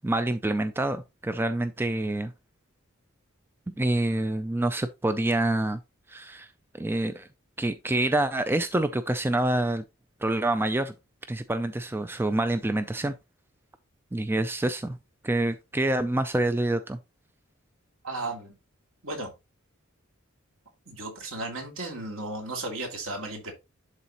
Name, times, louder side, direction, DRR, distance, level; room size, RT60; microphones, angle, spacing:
voice 1, 0.0-2.3 3.7-5.8 6.1-6.5 6.7-7.3 7.6-9.8 10.2-10.9 11.3-13.1 14.1-15.0 15.2-17.0, right 1 dB, 10° right, 0.4 m, -27 dB
voice 2, 18.0-18.6 19.0-19.3 20.9-23.5, right 2 dB, 70° right, 2.6 m, -35 dB
11.0 x 4.0 x 2.9 m
head